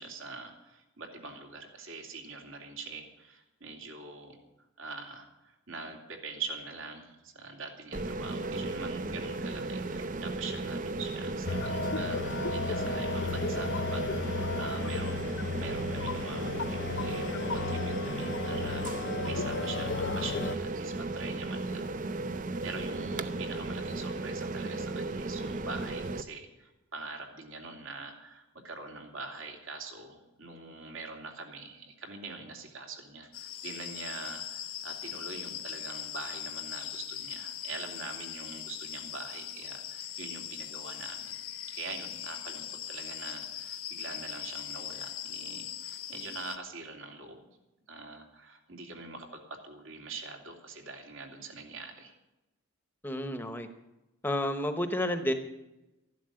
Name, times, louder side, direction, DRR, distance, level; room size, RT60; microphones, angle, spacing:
voice 1, 0.0-4.4 4.8-41.4 41.7-47.5 47.9-52.1, right 3 dB, 70° right, 2 dB, 2.9 m, -44 dB
sound 1, 7.9-26.2, right 2 dB, 40° right, 0.6 m, -35 dB
sound 2, 11.5-20.6, left 4 dB, 55° left, 0.6 m, -34 dB
sound 3, 33.3-46.6, left 10 dB, 85° left, 1.2 m, -40 dB
voice 2, 53.0-53.7 54.2-55.3, left 1 dB, 10° left, 7 dB, 0.9 m, -30 dB
13.0 x 11.5 x 7.6 m, 0.98 s
head